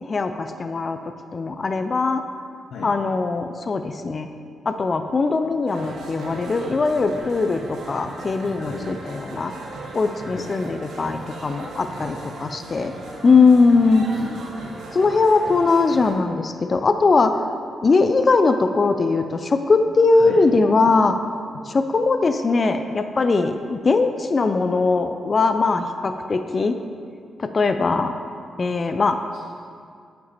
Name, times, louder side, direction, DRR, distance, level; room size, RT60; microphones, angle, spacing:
voice 1, 0.0-1.0 1.3-2.2 2.8-4.3 4.7-9.5 9.9-12.9 13.2-14.1 14.9-17.4 17.8-21.2 21.7-26.8 27.4-28.2 28.6-29.2, left 4 dB, 40° left, 8 dB, 0.3 m, -20 dB
sound 1, 5.7-16.1, right 2 dB, 85° right, 1.0 m, -37 dB
voice 2, 8.6-8.9 10.2-10.5 14.0-14.5 20.1-20.4, left 5 dB, 85° left, -1 dB, 0.6 m, -36 dB
8.0 x 5.2 x 4.4 m, 2.3 s
cardioid pair, 100°, 0 cm